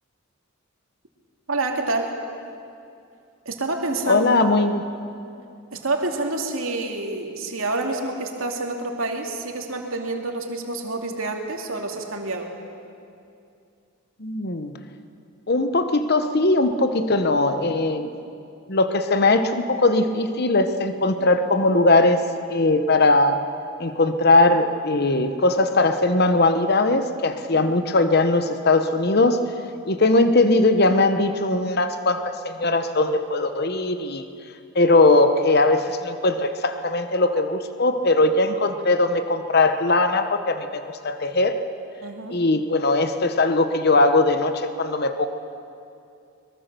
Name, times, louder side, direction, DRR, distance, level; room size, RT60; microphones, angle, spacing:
voice 1, 1.5-2.1 3.5-4.2 5.7-12.5 27.5-27.6 42.0-42.4, right 2 dB, 70° right, 2 dB, 2.6 m, -28 dB
voice 2, 4.1-4.9 14.2-14.7 15.5-18.1 18.7-22.2 22.5-23.4 23.8-29.4 29.9-34.2 34.7-41.6 42.3-45.3, left 2 dB, 50° left, 9 dB, 1.0 m, -20 dB
23.0 x 22.0 x 6.9 m, 2.5 s
head